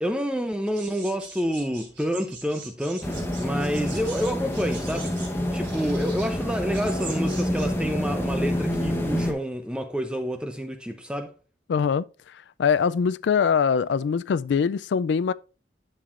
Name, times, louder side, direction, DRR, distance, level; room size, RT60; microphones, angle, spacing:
voice 1, 0.0-5.1 5.5-11.3, equal, 5° right, 0.5 m, -28 dB
sound 1, 0.7-7.7, right 4 dB, 90° right, 3.4 m, -43 dB
sound 2, 3.0-9.3, equal, 15° left, 0.9 m, -27 dB
voice 2, 11.7-15.3, left 6 dB, 85° left, 0.3 m, -23 dB
10.5 x 6.7 x 2.5 m
head